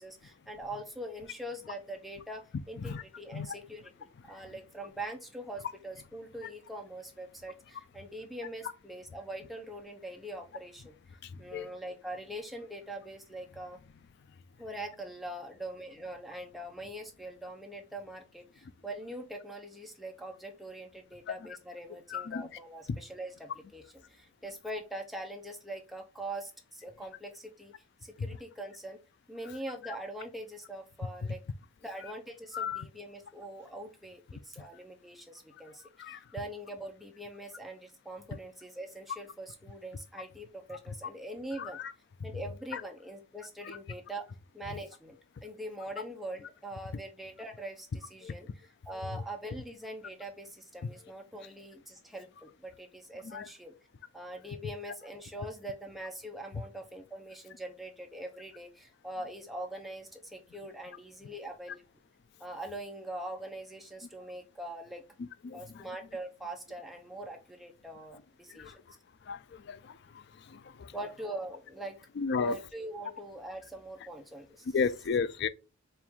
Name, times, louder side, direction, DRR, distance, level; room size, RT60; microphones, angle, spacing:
voice 1, 0.0-13.8 14.6-27.7 28.0-29.0 29.3-31.4 31.8-41.8 42.2-44.2 44.5-53.7 54.1-61.8 62.4-65.0 65.5-68.8 70.9-72.0 72.4-74.8, right 1 dB, ahead, 0.6 m, -43 dB
voice 2, 22.1-22.5 32.5-32.9 36.0-36.2 41.6-41.8 42.7-42.8 43.7-43.8 48.2-48.3 53.3-53.5 65.4-65.8 68.5-68.7 69.3-69.4 69.7-70.0 70.5-70.9 72.2-72.6 74.7-75.5, left 5 dB, 50° left, 0.3 m, -33 dB
4.5 x 2.5 x 3.5 m
head